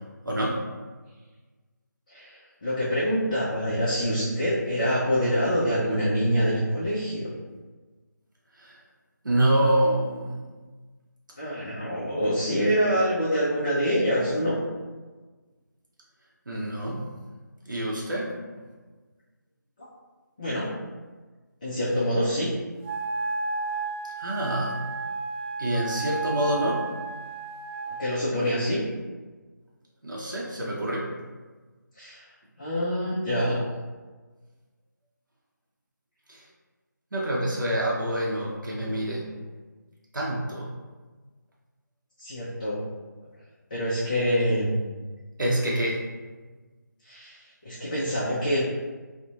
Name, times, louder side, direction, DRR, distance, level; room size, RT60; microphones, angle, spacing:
voice 1, 0.2-0.6 8.6-8.7 9.2-10.4 16.5-17.1 17.7-18.3 24.2-24.8 25.6-26.9 30.0-31.1 36.3-36.4 37.1-39.3 40.1-40.7 45.4-46.0, right 1 dB, 80° right, -4 dB, 0.6 m, -26 dB
voice 2, 2.1-7.3 11.4-14.6 20.4-20.7 21.6-22.5 28.0-28.8 32.0-32.2 32.6-33.6 42.2-42.8 43.7-44.8 47.0-47.4 47.6-48.6, equal, 25° left, -9 dB, 0.4 m, -25 dB
Wind instrument woodwind instrument, 22.8-28.1, right 4 dB, 35° right, 0.5 m, -32 dB
2.4 x 2.1 x 2.7 m, 1.3 s
figure-of-eight pair, 160°, 10 cm